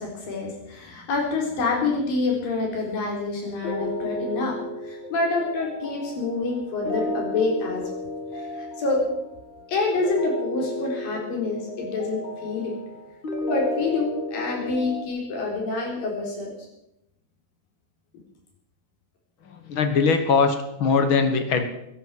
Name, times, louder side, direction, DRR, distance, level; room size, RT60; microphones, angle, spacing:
voice 1, 0.0-7.8 8.3-9.2 9.7-12.7 13.5-16.5, left 3 dB, 85° left, 0 dB, 5.7 m, -27 dB
sound 1, 3.6-15.1, left 1 dB, 35° left, 2.4 m, -33 dB
voice 2, 19.5-21.7, left 5 dB, 55° left, 8 dB, 1.5 m, -21 dB
17.0 x 11.0 x 7.4 m, 0.86 s
omnidirectional pair, 4.0 m